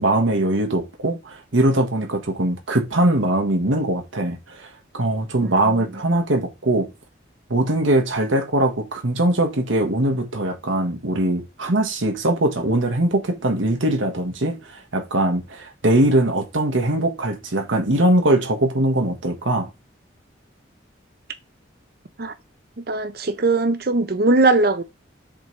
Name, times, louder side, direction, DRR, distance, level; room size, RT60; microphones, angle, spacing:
voice 1, 0.0-4.7 4.9-6.9 7.5-19.7, right 1 dB, 85° right, 1.4 m, -21 dB
voice 2, 5.4-5.9 22.2-22.3 22.9-24.8, right 3 dB, 50° right, 0.7 m, -20 dB
7.5 x 4.0 x 3.2 m
head